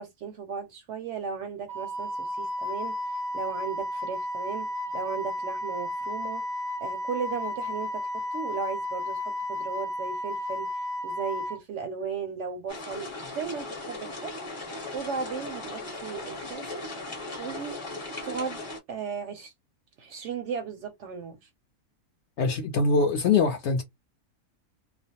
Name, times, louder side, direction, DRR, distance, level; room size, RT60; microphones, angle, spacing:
voice 1, 0.0-3.0 3.3-4.7 4.9-6.4 6.8-9.2 9.5-10.7 11.0-14.3 14.9-16.8 17.4-17.8 18.2-18.6 18.9-19.5 20.0-21.4, right 6 dB, 65° right, 0.7 m, -35 dB
Wind instrument woodwind instrument, 1.7-11.6, left 1 dB, 30° right, 0.6 m, -33 dB
sound 1, 12.7-18.8, left 2 dB, 25° left, 0.8 m, -38 dB
voice 2, 22.4-23.8, left 4 dB, 65° left, 0.7 m, -23 dB
2.4 x 2.1 x 2.7 m
omnidirectional pair, 1.5 m